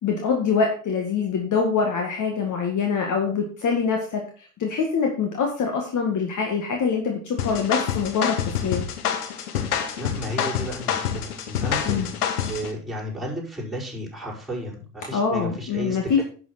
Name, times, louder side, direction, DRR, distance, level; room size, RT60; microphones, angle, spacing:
voice 1, 0.0-8.4 8.6-8.8 11.8-12.1 15.1-16.2, left 5 dB, 40° left, 2 dB, 2.0 m, -24 dB
sound 1, 7.4-12.7, left 8 dB, 75° left, 1.3 m, -27 dB
voice 2, 10.0-12.1 12.5-16.2, equal, ahead, -6 dB, 5.4 m, -33 dB
11.0 x 6.6 x 4.3 m, 0.38 s
figure-of-eight pair, 65°, 46 cm